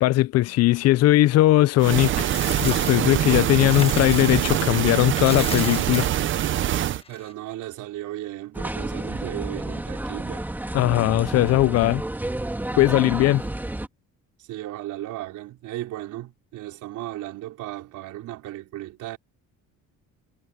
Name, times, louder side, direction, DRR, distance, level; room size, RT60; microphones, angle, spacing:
voice 1, 0.0-6.1 10.7-12.0 12.8-13.4, left 16 dB, 55° left, 0.4 m, -19 dB
sound 1, 1.8-7.0, right 12 dB, 40° right, 0.6 m, -24 dB
Coin (dropping), 1.9-4.7 5.0-7.3, left 4 dB, 20° left, 1.3 m, -36 dB
voice 2, 7.1-10.5 14.4-19.2, right 15 dB, 75° right, 3.9 m, -35 dB
sound 2, 8.5-13.9, right 1 dB, 5° right, 2.2 m, -31 dB
cardioid pair, 160°, 30 cm